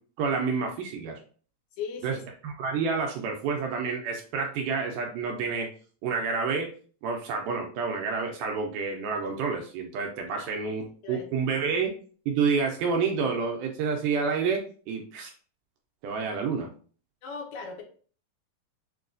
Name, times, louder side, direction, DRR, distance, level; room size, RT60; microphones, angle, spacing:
voice 1, 0.2-1.2 2.0-2.2 2.4-5.7 6.0-6.7 7.0-10.8 11.1-11.9 12.3-15.3 16.0-16.7, right 5 dB, 80° right, 2 dB, 2.0 m, -29 dB
voice 2, 1.8-2.2 10.4-10.8 11.0-11.2 17.2-17.8, left 5 dB, 80° left, 0 dB, 2.4 m, -38 dB
6.6 x 2.3 x 2.5 m, 0.42 s
omnidirectional pair, 4.0 m